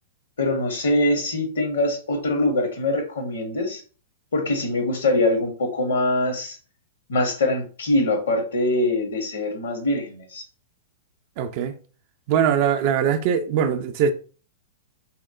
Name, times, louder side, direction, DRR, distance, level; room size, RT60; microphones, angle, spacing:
voice 1, 0.4-3.8 4.3-6.6 7.1-10.4, left 2 dB, 70° left, 0.7 m, -23 dB
voice 2, 11.4-11.7 12.3-14.1, right 8 dB, 45° right, 0.3 m, -21 dB
2.8 x 2.0 x 2.3 m
figure-of-eight pair, 105°, 0 cm